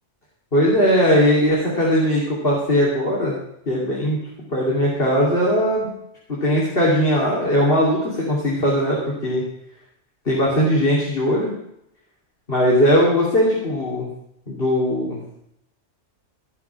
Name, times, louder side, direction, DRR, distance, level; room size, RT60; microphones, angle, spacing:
voice 1, 0.5-3.4 3.7-4.2 4.5-5.9 6.3-9.4 10.2-11.5 12.5-14.1 14.5-15.2, equal, 50° left, -5 dB, 3.2 m, -19 dB
17.0 x 6.0 x 6.0 m, 0.78 s
omnidirectional pair, 1.3 m